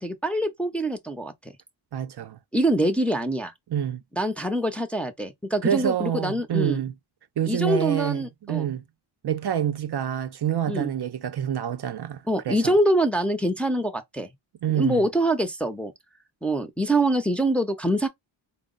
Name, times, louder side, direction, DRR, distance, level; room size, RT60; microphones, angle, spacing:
voice 1, 0.0-1.3 2.5-3.5 4.1-6.8 7.5-8.7 10.7-10.9 12.3-14.3 14.7-15.9 16.4-18.1, right 1 dB, 5° left, 0.5 m, -24 dB
voice 2, 1.9-2.4 3.7-4.0 5.6-6.9 7.4-8.8 9.2-12.7 14.6-15.0, right 9 dB, 55° right, 0.5 m, -27 dB
4.3 x 2.0 x 3.7 m
wide cardioid pair, 135°, 48 cm